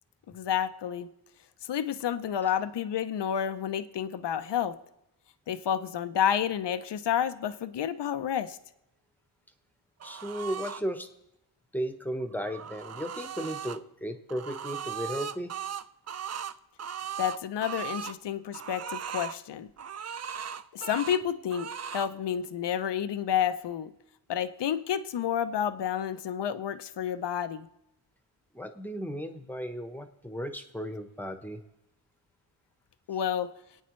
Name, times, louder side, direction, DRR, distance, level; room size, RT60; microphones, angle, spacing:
voice 1, 0.3-1.1 1.7-4.8 5.5-8.6 17.2-19.7 20.7-23.9 24.3-27.7 33.1-33.5, left 9 dB, 65° left, 11 dB, 0.7 m, -30 dB
voice 2, 10.0-11.1 11.7-15.6 28.5-31.6, equal, 5° left, 7 dB, 1.1 m, -35 dB
sound 1, 10.0-10.8 12.2-13.8 14.3-18.2 18.5-19.4 19.8-21.2 21.5-22.1, right 8 dB, 40° right, 0.4 m, -38 dB
27.0 x 9.1 x 3.2 m, 0.87 s
wide cardioid pair, 95°, 44 cm